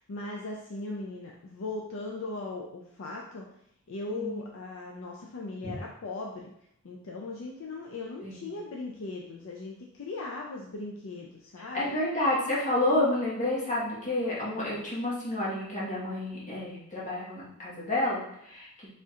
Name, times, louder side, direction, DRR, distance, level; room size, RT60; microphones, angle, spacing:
voice 1, 0.1-3.5 3.9-6.5 6.8-11.8, left 3 dB, 60° left, -1 dB, 0.4 m, -38 dB
voice 2, 8.2-8.6 11.6-18.9, left 1 dB, 35° left, -7 dB, 1.3 m, -30 dB
4.2 x 3.6 x 2.4 m, 0.74 s
head